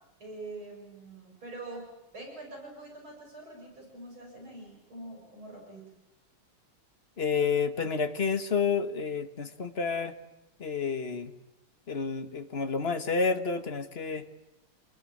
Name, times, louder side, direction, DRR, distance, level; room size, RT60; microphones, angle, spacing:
voice 1, 0.2-1.8 2.1-5.9, right 2 dB, 65° right, 0 dB, 8.2 m, -44 dB
voice 2, 7.2-10.1 10.6-11.3 11.9-14.2, left 5 dB, 30° left, 8 dB, 1.6 m, -29 dB
29.0 x 21.5 x 9.4 m, 0.88 s
omnidirectional pair, 2.4 m